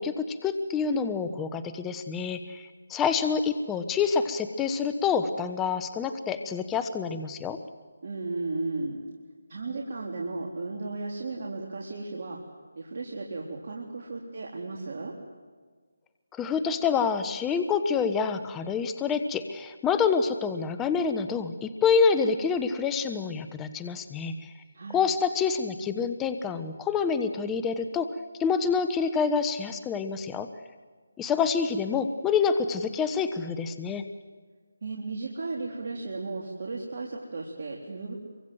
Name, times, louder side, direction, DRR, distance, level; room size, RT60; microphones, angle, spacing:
voice 1, 0.0-7.6 16.3-24.5 24.9-28.1 28.4-30.5 31.2-34.0, left 6 dB, 10° left, 9 dB, 0.9 m, -27 dB
voice 2, 8.0-9.0 9.5-12.4 12.8-15.1 24.7-25.0 34.8-38.2, right 3 dB, 50° right, -1 dB, 3.5 m, -35 dB
26.5 x 23.5 x 7.8 m, 1.5 s
figure-of-eight pair, 160°, 0 cm